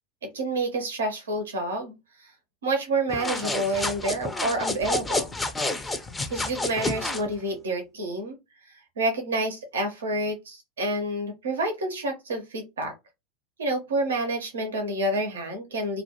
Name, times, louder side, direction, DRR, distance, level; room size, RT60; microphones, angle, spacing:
voice 1, 0.2-2.3 2.6-5.3 6.3-8.4 8.7-12.9 13.6-16.0, right 2 dB, 75° right, 4 dB, 0.6 m, -28 dB
sound 1, 3.1-7.3, left 2 dB, 10° left, 0.4 m, -29 dB
2.2 x 2.1 x 2.7 m, 0.23 s
figure-of-eight pair, 85°, 0 cm